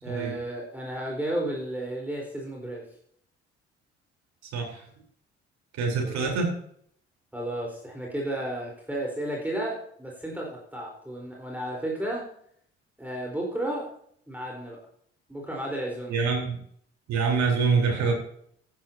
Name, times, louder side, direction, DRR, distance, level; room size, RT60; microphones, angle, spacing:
voice 1, 0.0-2.9 5.9-6.3 7.3-12.3 13.0-13.9 14.3-14.8 15.3-16.2, right 1 dB, 5° right, -2 dB, 4.2 m, -33 dB
voice 2, 4.5-4.9 5.7-6.5 16.1-16.6 17.1-18.1, right 5 dB, 55° right, 0 dB, 4.0 m, -25 dB
14.5 x 10.5 x 2.8 m, 0.64 s
figure-of-eight pair, 45°, 32 cm